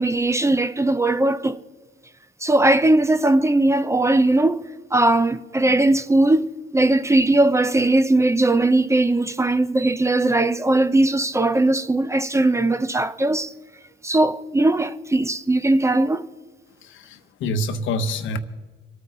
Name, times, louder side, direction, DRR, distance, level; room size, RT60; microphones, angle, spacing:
voice 1, 0.0-1.6 2.4-6.5 6.7-13.5 14.0-16.3, right 2 dB, 15° right, 0.5 m, -19 dB
voice 2, 16.8-18.4, left 1 dB, 80° left, 1.0 m, -26 dB
26.0 x 9.2 x 3.9 m
cardioid pair, 90°, 20 cm